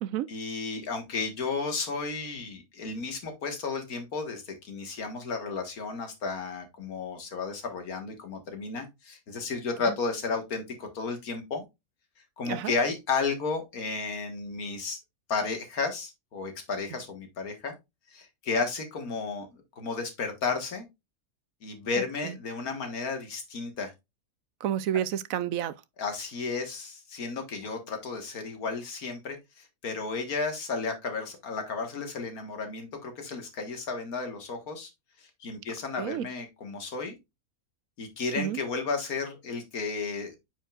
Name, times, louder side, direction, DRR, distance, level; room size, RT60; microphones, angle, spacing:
voice 1, 0.3-11.6 12.4-15.0 15.3-17.7 18.1-20.9 21.6-23.9 26.0-34.9 35.2-37.2 38.0-40.4, left 4 dB, 90° left, 2.1 m, -33 dB
voice 2, 24.6-25.7 36.0-36.3 38.4-38.6, right 11 dB, 75° right, 1.0 m, -30 dB
8.7 x 5.2 x 2.4 m
omnidirectional pair, 1.5 m